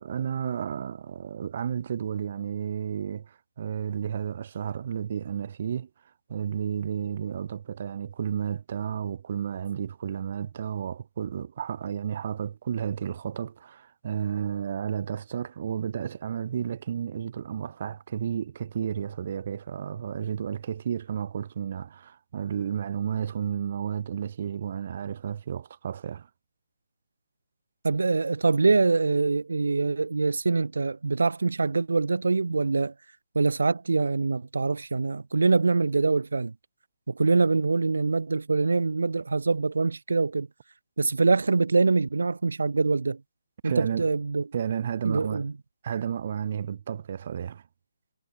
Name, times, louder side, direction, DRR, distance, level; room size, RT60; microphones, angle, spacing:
voice 1, 0.0-5.9 6.3-26.3 43.6-44.1 44.5-45.4 45.8-47.6, right 8 dB, 50° right, 3.0 m, -32 dB
voice 2, 27.8-32.9 33.4-36.5 37.1-40.5 41.0-43.2 43.6-44.4 45.0-45.5, right 3 dB, 85° right, 1.9 m, -24 dB
hypercardioid pair, 155°, 0 cm